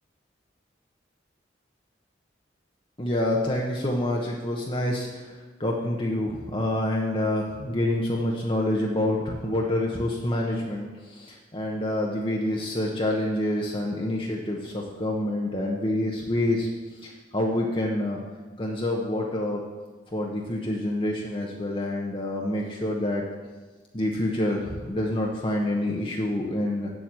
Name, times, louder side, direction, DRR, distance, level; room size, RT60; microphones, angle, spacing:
voice 1, 3.0-5.3 5.6-16.7 17.0-18.2 18.6-19.6 20.1-23.2 23.9-26.9, left 1 dB, 30° left, -2 dB, 1.0 m, -27 dB
7.9 x 7.3 x 7.6 m, 1.3 s
head